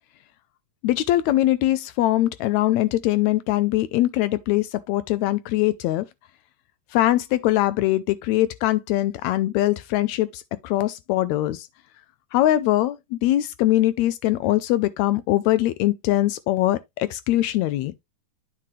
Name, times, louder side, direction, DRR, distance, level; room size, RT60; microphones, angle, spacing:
voice 1, 0.8-6.0 6.9-11.7 12.3-17.9, left 15 dB, 90° left, 1.6 m, -22 dB
9.7 x 4.7 x 3.2 m
omnidirectional pair, 3.8 m